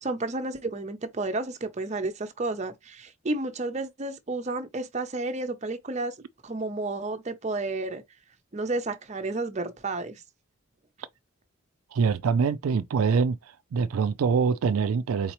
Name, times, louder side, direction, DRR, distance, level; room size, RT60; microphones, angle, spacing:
voice 1, 0.0-6.1 6.4-8.0 8.5-10.2, right 2 dB, 30° right, 0.6 m, -31 dB
voice 2, 11.9-13.4 13.7-15.3, right 5 dB, 85° right, 0.4 m, -24 dB
4.1 x 3.9 x 3.0 m
head